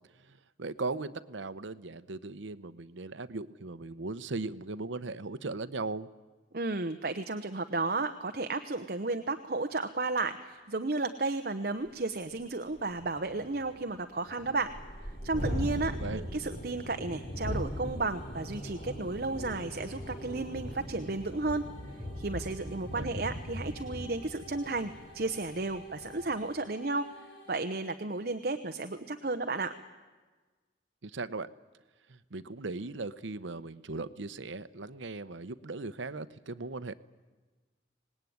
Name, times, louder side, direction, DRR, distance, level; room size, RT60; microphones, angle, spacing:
voice 1, 0.2-6.1 15.9-16.2 22.9-23.1 31.0-31.5 32.1-36.9, right 3 dB, 80° right, 13 dB, 0.8 m, -38 dB
voice 2, 6.5-14.7 15.0-21.6 22.2-27.1 27.5-29.7, right 3 dB, 50° right, 8 dB, 0.9 m, -33 dB
Thunderstorm, 11.9-12.0 12.3-12.4 12.7-26.3, equal, 45° left, 4.2 m, -40 dB
sound 1, 14.1-27.6, equal, 75° left, 6.9 m, -54 dB
25.5 x 19.5 x 9.5 m, 1.3 s
head